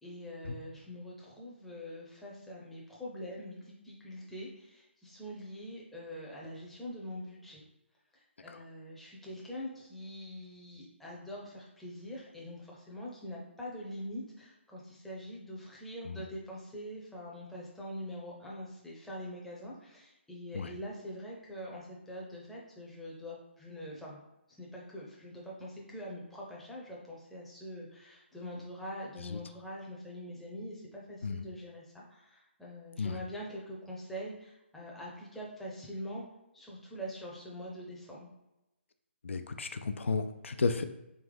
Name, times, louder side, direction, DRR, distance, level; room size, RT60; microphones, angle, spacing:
voice 1, 0.0-7.6 8.4-24.2 24.6-36.2 36.5-38.3, equal, ahead, -5 dB, 0.6 m, -44 dB
voice 2, 39.2-40.8, left 4 dB, 80° left, 8 dB, 0.4 m, -33 dB
3.6 x 3.0 x 3.3 m, 0.94 s
hypercardioid pair, 155°, 7 cm